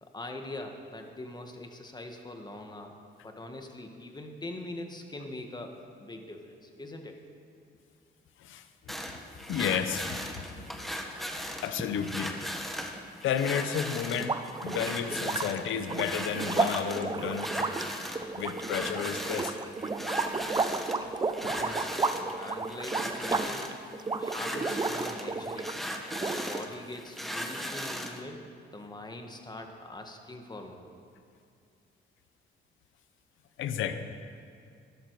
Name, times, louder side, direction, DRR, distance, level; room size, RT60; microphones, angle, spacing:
voice 1, 0.0-2.9 3.2-7.2 21.4-23.8 24.2-25.8 26.2-28.4 28.7-30.9, left 2 dB, 20° left, 4 dB, 1.5 m, -42 dB
sound 1, 8.9-28.2, equal, ahead, 1.1 m, -38 dB
voice 2, 9.5-10.8 11.6-12.3 13.2-17.5 18.3-19.5 21.4-21.5 33.6-33.9, left 8 dB, 80° left, 10 dB, 0.8 m, -32 dB
sound 2, 14.1-25.8 26.1-26.9, right 3 dB, 20° right, 0.6 m, -32 dB
12.0 x 11.5 x 4.7 m, 2.4 s
cardioid pair, 90°, 20 cm